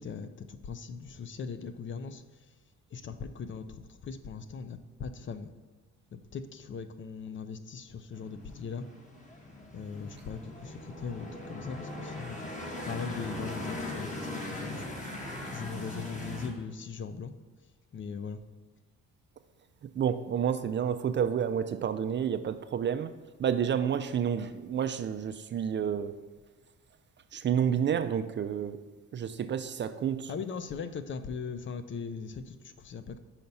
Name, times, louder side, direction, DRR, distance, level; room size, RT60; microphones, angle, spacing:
voice 1, 0.0-2.5 2.9-5.5 6.1-8.9 9.7-12.4 12.8-17.4 17.9-18.4 30.3-33.2, left 5 dB, 40° left, 11 dB, 0.5 m, -40 dB
sound 1, 8.1-16.5, left 1 dB, 25° left, 1.5 m, -40 dB
voice 2, 19.8-23.1 23.4-26.1 27.3-28.8 29.1-30.3, right 8 dB, 40° right, 11 dB, 0.4 m, -30 dB
5.7 x 4.1 x 5.2 m, 1.3 s
cardioid pair, 90°, 30 cm